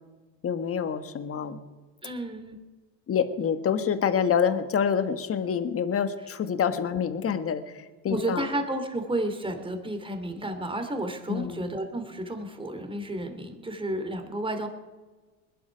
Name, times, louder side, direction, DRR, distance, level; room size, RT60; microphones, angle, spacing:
voice 1, 0.4-1.6 3.1-8.5 11.3-11.7, left 7 dB, 35° left, 10 dB, 1.5 m, -27 dB
voice 2, 2.0-2.6 8.1-14.7, right 1 dB, 15° right, 6 dB, 2.7 m, -32 dB
21.0 x 11.5 x 5.2 m, 1.3 s
supercardioid pair, 100°, 39 cm